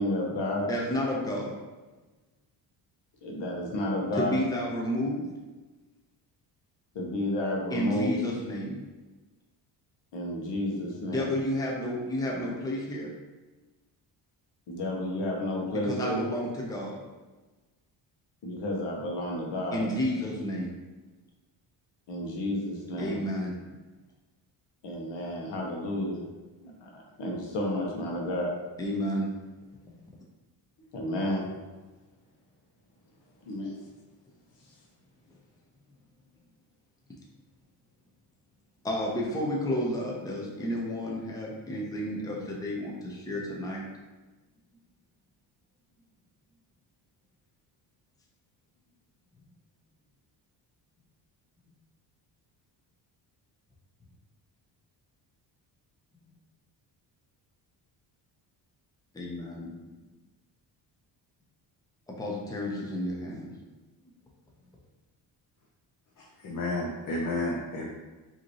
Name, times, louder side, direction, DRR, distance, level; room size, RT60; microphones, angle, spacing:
voice 1, 0.0-0.7 3.2-4.4 6.9-8.1 10.1-11.3 14.7-16.2 18.4-19.9 22.1-23.2 24.8-26.2 26.6-28.5 30.9-31.5 33.4-33.7, left 1 dB, 70° left, -1 dB, 1.1 m, -31 dB
voice 2, 0.7-1.6 4.1-5.3 7.7-8.8 11.0-13.1 15.8-17.0 19.7-20.8 23.0-23.6 28.8-29.3 38.8-43.8 59.1-59.7 62.1-63.6, left 1 dB, 10° left, -3 dB, 0.7 m, -31 dB
voice 3, 66.2-67.9, left 2 dB, 45° left, -2 dB, 0.8 m, -31 dB
5.0 x 2.9 x 3.0 m, 1.2 s
cardioid pair, 115°, 44 cm